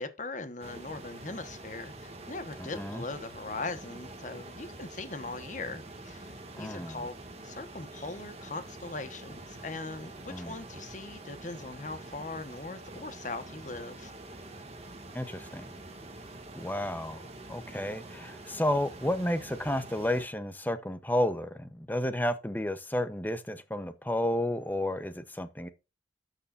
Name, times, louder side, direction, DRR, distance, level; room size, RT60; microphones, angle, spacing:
voice 1, 0.0-14.1, left 3 dB, 40° left, 1.2 m, -40 dB
sound 1, 0.6-20.3, right 2 dB, 35° right, 1.8 m, -46 dB
voice 2, 2.6-3.0 6.6-7.0 10.3-10.6 15.1-15.6 16.5-25.7, left 1 dB, 10° left, 0.7 m, -32 dB
12.5 x 6.6 x 2.5 m
head